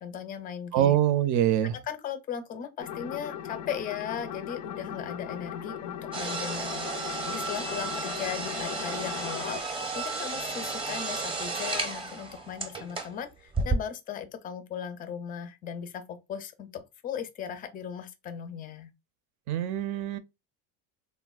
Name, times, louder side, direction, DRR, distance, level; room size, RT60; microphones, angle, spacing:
voice 1, 0.0-1.0 1.6-18.9, left 8 dB, 25° left, 0.4 m, -37 dB
voice 2, 0.7-1.8 19.5-20.2, right 11 dB, 55° right, 0.5 m, -24 dB
sound 1, 2.8-9.6, left 9 dB, 80° left, 0.5 m, -38 dB
sound 2, 6.1-13.2 13.5-13.8, right 3 dB, 15° right, 0.6 m, -33 dB
3.3 x 2.2 x 2.3 m
supercardioid pair, 100°, 36 cm